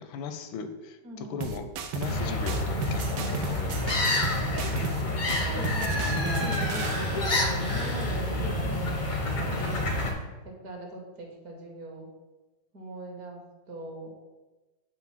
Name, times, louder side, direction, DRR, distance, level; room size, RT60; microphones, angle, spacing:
voice 1, 0.0-4.1, left 5 dB, 85° left, 9 dB, 1.3 m, -38 dB
voice 2, 1.0-1.4 5.3-10.2 10.4-12.1 12.7-14.2, right 1 dB, 55° right, 1 dB, 1.4 m, -41 dB
sound 1, 1.4-2.2 2.5-5.0 5.3-7.0, right 6 dB, 80° right, 1.4 m, -35 dB
sound 2, 2.0-10.1, left 1 dB, 55° left, 0.5 m, -28 dB
7.0 x 2.5 x 5.6 m, 1.1 s
omnidirectional pair, 2.1 m